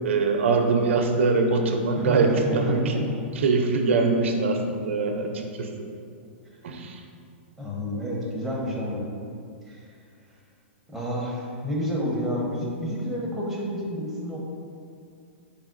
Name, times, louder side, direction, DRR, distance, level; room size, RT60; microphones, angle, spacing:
voice 1, 0.0-3.0 3.4-5.7 6.6-7.0, right 4 dB, 80° right, 4 dB, 0.4 m, -23 dB
voice 2, 1.9-3.4 7.6-9.1 9.7-9.8 10.9-14.4, equal, ahead, -4 dB, 0.7 m, -30 dB
4.1 x 3.5 x 2.5 m, 2.3 s
hypercardioid pair, 140°, 7 cm